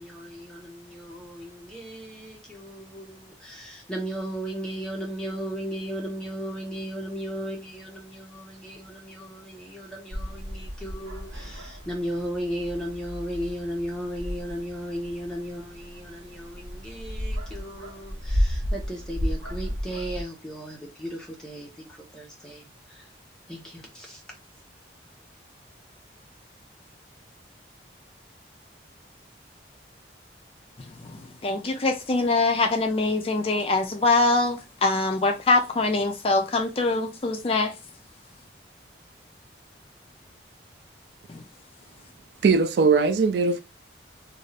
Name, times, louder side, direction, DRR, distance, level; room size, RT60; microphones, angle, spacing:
voice 1, 0.0-23.1 23.5-24.2, equal, 5° left, 0.9 m, -36 dB
sound 1, 10.1-20.2, equal, 90° right, 1.0 m, -33 dB
voice 2, 30.8-37.7 41.3-41.4, left 3 dB, 30° left, 0.4 m, -24 dB
voice 3, 42.4-43.6, right 4 dB, 65° right, 0.3 m, -20 dB
2.6 x 2.4 x 3.2 m
head